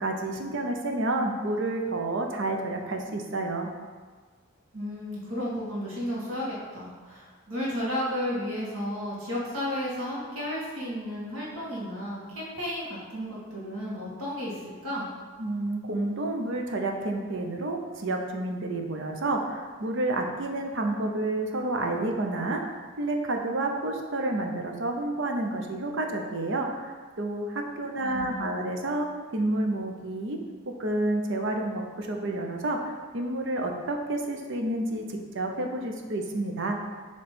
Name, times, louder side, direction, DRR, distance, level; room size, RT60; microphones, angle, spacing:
voice 1, 0.0-3.7 15.4-29.1 29.3-30.4 30.7-36.8, right 2 dB, 60° right, 3 dB, 0.7 m, -30 dB
voice 2, 4.7-15.1 28.0-28.7, equal, 85° right, -6 dB, 1.9 m, -33 dB
7.0 x 3.2 x 5.1 m, 1.5 s
head